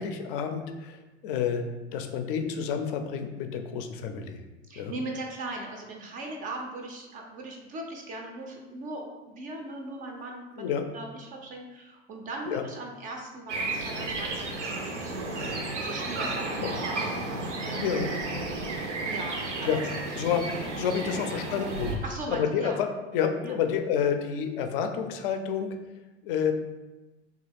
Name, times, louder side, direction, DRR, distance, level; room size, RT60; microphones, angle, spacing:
voice 1, 0.0-1.6 1.9-4.4 4.8-4.9 10.6-10.8 12.5-12.6 16.6-16.8 17.8-18.1 19.7-19.8 20.2-20.5 20.8-25.8 26.2-26.5, left 7 dB, 50° left, 6 dB, 0.4 m, -29 dB
voice 2, 4.7-15.3 15.8-17.1 17.6-18.1 19.0-19.8 21.0-21.2 22.0-22.8 23.4-23.6, right 2 dB, 25° right, 1 dB, 0.4 m, -39 dB
sound 1, 13.5-22.0, right 2 dB, 90° right, 0.5 m, -33 dB
2.8 x 2.3 x 3.3 m, 1.1 s
figure-of-eight pair, 85°, 35 cm